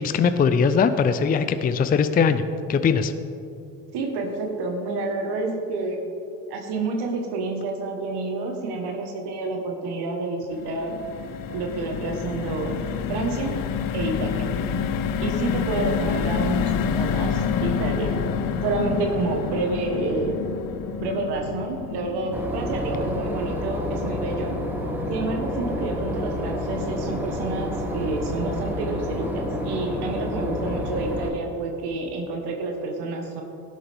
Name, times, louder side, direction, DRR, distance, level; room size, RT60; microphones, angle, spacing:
voice 1, 0.0-2.4 2.7-3.1, left 6 dB, 20° left, 10 dB, 0.4 m, -20 dB
voice 2, 3.9-6.2 6.5-11.0 11.5-12.8 13.1-13.5 13.9-14.5 15.2-18.2 18.6-20.4 21.0-24.5 25.1-33.4, right 3 dB, 65° right, 2 dB, 1.4 m, -29 dB
sound 1, 10.5-26.8 27.2-27.4 27.6-27.8, left 7 dB, 50° left, 0.8 m, -29 dB
Boat Water vehicle / Engine, 22.3-31.3, left 1 dB, 5° right, 1.6 m, -29 dB
17.0 x 7.7 x 3.5 m, 2.7 s
supercardioid pair, 75°, 42 cm